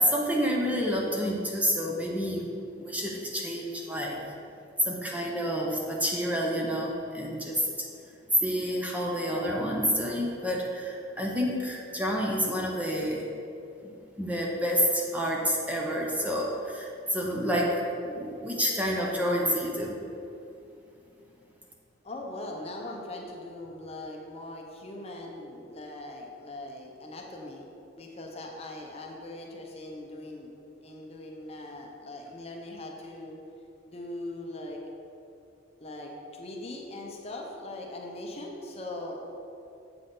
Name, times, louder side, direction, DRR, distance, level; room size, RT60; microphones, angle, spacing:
voice 1, 0.0-4.2 4.8-7.9 8.4-13.3 13.8-20.0, equal, 10° right, -2 dB, 0.7 m, -29 dB
voice 2, 22.0-27.6 28.0-30.5 30.8-33.4 33.9-34.8 35.8-39.3, left 1 dB, 35° left, 0 dB, 0.8 m, -40 dB
7.7 x 5.9 x 3.9 m, 2.6 s
head